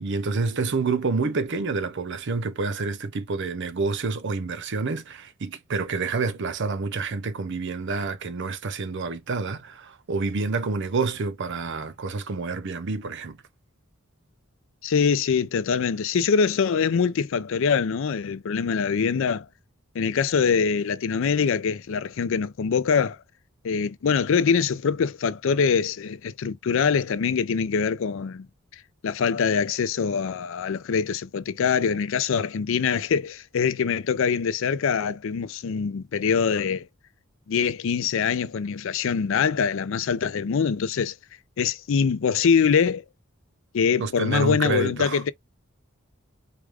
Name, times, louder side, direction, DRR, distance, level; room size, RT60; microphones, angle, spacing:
voice 1, 0.0-13.4 44.0-45.2, right 4 dB, 60° right, 0.6 m, -28 dB
voice 2, 14.8-19.5 19.9-23.2 23.6-28.5 29.0-36.9 37.5-41.2 41.6-43.0 43.7-45.3, left 6 dB, 65° left, 0.4 m, -24 dB
4.8 x 2.2 x 3.4 m
head